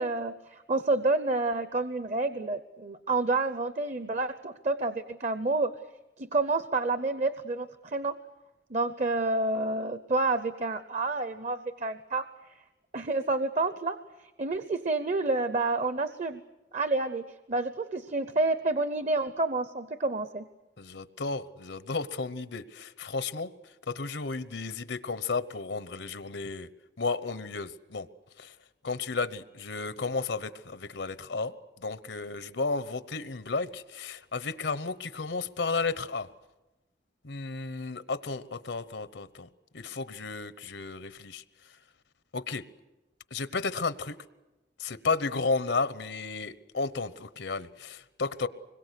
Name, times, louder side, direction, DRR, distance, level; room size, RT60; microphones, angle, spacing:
voice 1, 0.0-5.7 6.2-8.1 8.7-12.2 12.9-14.0 14.4-16.4 16.7-20.4, right 2 dB, 40° right, 11 dB, 0.7 m, -29 dB
voice 2, 20.8-23.5 23.9-26.7 27.0-28.1 28.4-28.5 28.8-31.5 31.8-36.3 37.2-39.5 39.7-41.4 42.3-42.6 43.3-44.2 44.8-48.5, left 4 dB, 85° left, 14 dB, 1.0 m, -33 dB
25.5 x 22.0 x 8.3 m, 1.1 s
head